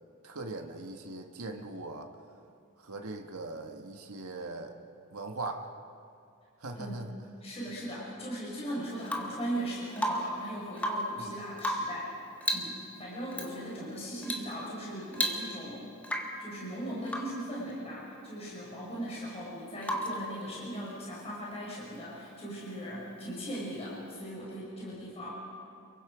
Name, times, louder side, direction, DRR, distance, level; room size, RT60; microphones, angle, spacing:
voice 1, 0.2-2.1 2.8-4.8 5.1-5.7 6.6-7.1 11.2-11.4, right 2 dB, 90° right, 3 dB, 1.6 m, -40 dB
voice 2, 6.8-7.1 7.4-12.1 12.5-15.9 16.4-25.3, right 1 dB, 30° left, -6 dB, 5.8 m, -39 dB
Rain / Water tap faucet / Drip, 9.0-9.4 10.0-10.4 10.7-11.2 11.6-12.0 12.4-12.8 13.3-13.5 14.2-14.5 14.8-14.9 15.1-15.7 16.0-16.4 17.1-17.4 19.8-20.3 22.2-22.3, equal, 5° left, 1.6 m, -33 dB
28.5 x 23.0 x 5.1 m, 2.4 s
head